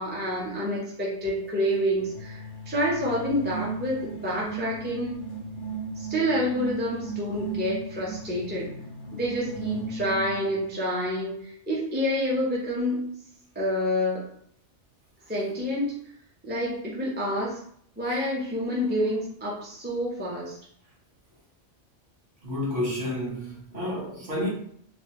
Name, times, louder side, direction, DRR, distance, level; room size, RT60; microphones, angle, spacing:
voice 1, 0.0-5.2 6.0-8.7 9.1-13.0 13.5-14.2 15.3-15.9 16.4-17.6 18.0-20.6, equal, 10° right, 0.5 m, -28 dB
sound 1, 2.0-10.6, right 4 dB, 90° left, 1.0 m, -36 dB
voice 2, 22.4-24.5, left 1 dB, 45° right, 1.1 m, -30 dB
3.1 x 2.3 x 2.9 m
omnidirectional pair, 1.2 m